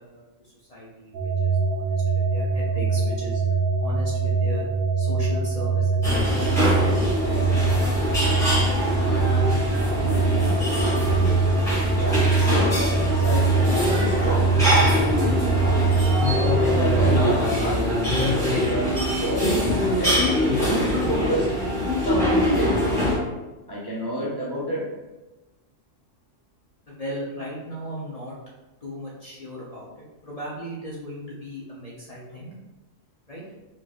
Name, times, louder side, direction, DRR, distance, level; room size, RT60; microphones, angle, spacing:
voice 1, 0.0-3.4 3.8-4.7 5.0-7.5 8.2-8.5 26.9-28.4 28.8-32.5 33.3-33.4, equal, 40° left, -7 dB, 0.6 m, -37 dB
sound 1, 1.1-17.2, right 4 dB, 60° right, 0.7 m, -23 dB
sound 2, 6.0-23.2, left 1 dB, 5° left, 1.2 m, -23 dB
voice 2, 11.9-14.6 15.0-15.6 16.3-18.3 18.6-19.4 20.0-20.1 20.5-21.5 22.0-23.1 23.7-24.8, equal, 25° right, -7 dB, 0.5 m, -29 dB
4.5 x 3.1 x 2.4 m, 1.1 s
omnidirectional pair, 1.4 m